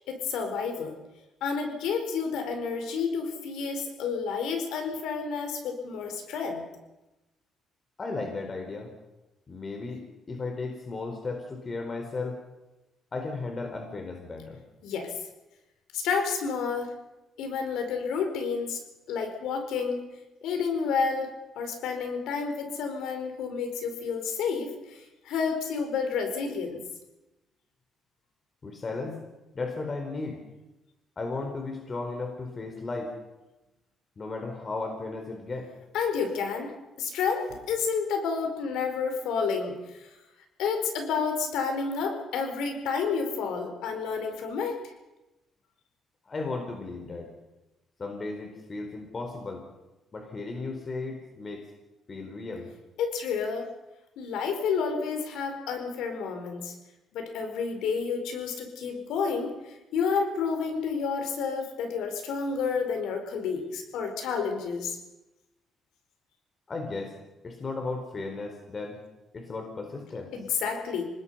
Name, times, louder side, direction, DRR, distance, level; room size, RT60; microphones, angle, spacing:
voice 1, 0.1-1.0 1.4-6.6 14.8-15.1 15.9-16.9 17.4-18.8 19.1-20.0 20.4-21.3 21.6-26.8 35.9-36.7 37.0-40.1 40.6-44.8 53.0-53.7 54.2-56.7 57.1-65.0 70.3-71.0, left 5 dB, 90° left, 5 dB, 4.6 m, -30 dB
voice 2, 8.0-8.9 9.5-12.4 13.1-14.6 28.6-29.2 29.5-30.4 31.2-33.1 34.2-35.7 46.3-47.3 48.0-49.6 50.1-51.7 52.1-52.7 66.7-67.2 67.4-69.0 69.3-70.3, left 3 dB, 35° left, 3 dB, 4.3 m, -35 dB
27.0 x 20.0 x 5.7 m, 1.0 s
cardioid pair, 90°, 0 cm